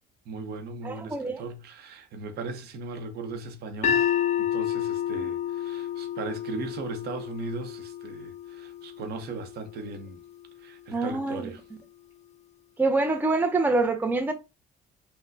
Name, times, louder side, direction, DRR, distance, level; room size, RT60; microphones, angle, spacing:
voice 1, 0.3-4.0 4.4-10.2 10.6-11.6, right 3 dB, 70° right, 0.7 m, -37 dB
voice 2, 0.8-1.4 10.9-11.5 12.8-14.3, right 3 dB, 10° right, 0.5 m, -25 dB
sound 1, 3.8-10.0, left 10 dB, 45° left, 0.5 m, -30 dB
3.9 x 2.1 x 2.6 m
cardioid pair, 110°, 17 cm